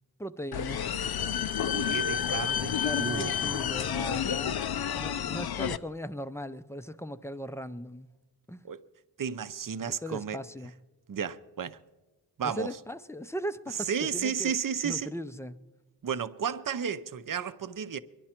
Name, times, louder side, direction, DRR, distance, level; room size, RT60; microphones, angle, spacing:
voice 1, 0.2-0.8 2.8-4.6 5.0-8.1 8.5-8.6 9.8-10.7 12.4-15.6, equal, 5° left, 0.5 m, -38 dB
sound 1, 0.5-5.8, left 8 dB, 60° left, 0.6 m, -30 dB
voice 2, 1.7-3.3 8.6-8.8 9.2-10.4 11.1-11.8 12.4-12.7 13.9-15.1 16.0-18.0, right 7 dB, 50° right, 0.7 m, -33 dB
22.5 x 11.0 x 4.4 m
cardioid pair, 65°, 44 cm